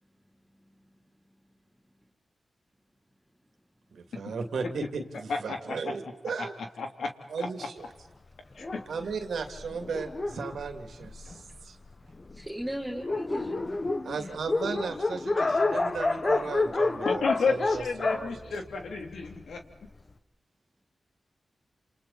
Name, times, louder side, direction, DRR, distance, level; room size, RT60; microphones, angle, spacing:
voice 1, 0.6-1.0 11.4-11.5 12.1-13.6 14.0-14.3, equal, 15° right, -1 dB, 4.0 m, -38 dB
voice 2, 3.9-6.5 7.3-7.9 8.9-11.8 14.0-17.8 18.1-18.4, right 5 dB, 85° right, 6 dB, 2.7 m, -35 dB
voice 3, 5.3-5.9 6.4-6.5 6.8-7.1 8.6-8.8 17.0-19.6, left 4 dB, 85° left, 4 dB, 3.1 m, -31 dB
Dog, 8.6-11.6 12.3-12.4 12.7-12.8 13.0-19.4, left 3 dB, 40° left, 1.4 m, -29 dB
29.5 x 28.5 x 4.3 m, 1.1 s
cardioid pair, 50°, 0 cm